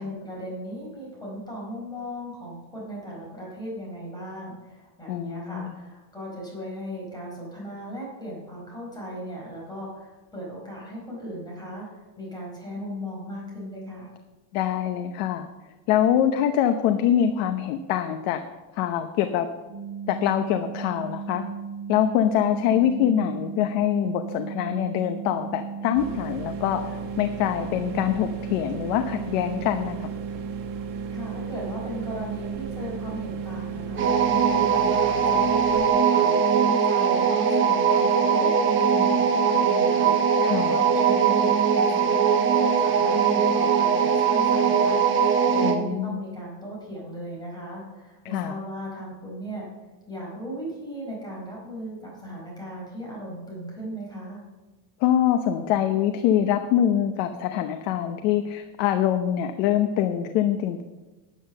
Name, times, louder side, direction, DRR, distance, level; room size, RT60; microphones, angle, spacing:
voice 1, 0.0-14.1 31.1-49.7 50.1-54.4, equal, 10° left, -4 dB, 4.6 m, -37 dB
voice 2, 5.1-5.7 14.5-15.5 15.9-18.4 18.8-19.5 20.1-21.4 21.9-26.8 27.2-30.1 40.4-40.8 45.6-46.2 48.3-48.6 55.0-60.8, left 10 dB, 80° left, 7 dB, 0.9 m, -24 dB
sound 1, 19.7-34.4, right 6 dB, 45° left, 2.8 m, -36 dB
sound 2, 25.9-35.9, right 4 dB, 45° right, 1.4 m, -38 dB
sound 3, 34.0-45.8, right 6 dB, 30° right, 1.1 m, -21 dB
10.0 x 8.7 x 6.6 m, 1.2 s
cardioid pair, 145°, 43 cm